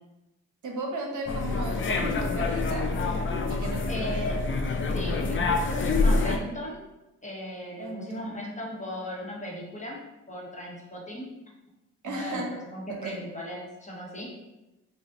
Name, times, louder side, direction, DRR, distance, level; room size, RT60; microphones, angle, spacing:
voice 1, 0.6-2.9 3.5-4.3 7.8-8.4 12.0-12.5 12.9-13.2, right 2 dB, 60° right, 1 dB, 0.8 m, -35 dB
sound 1, 1.3-6.4, left 3 dB, 35° left, 0.5 m, -26 dB
voice 2, 3.5-4.4 4.9-6.8 7.2-10.0 10.3-11.3 12.0-12.4 12.7-14.3, equal, 20° left, -4 dB, 1.3 m, -37 dB
5.1 x 2.5 x 2.6 m, 0.99 s
supercardioid pair, 60°, 33 cm